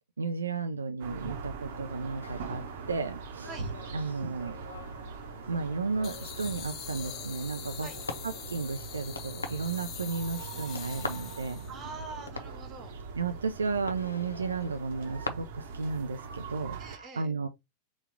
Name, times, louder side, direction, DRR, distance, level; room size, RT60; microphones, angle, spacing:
voice 1, 0.2-3.5 3.9-4.6 5.5-7.9 8.2-11.6 13.2-17.5, right 4 dB, 75° right, 0.4 m, -33 dB
sound 1, 1.0-17.0, right 4 dB, 55° right, 0.8 m, -42 dB
sound 2, 1.7-15.3, left 3 dB, 75° left, 0.7 m, -45 dB
voice 2, 3.4-3.7 7.8-8.0 11.7-13.0 16.8-17.3, right 4 dB, 30° right, 1.2 m, -44 dB
sound 3, 6.0-11.8, left 12 dB, 35° left, 0.4 m, -44 dB
4.1 x 2.3 x 4.6 m
figure-of-eight pair, 90°, 0 cm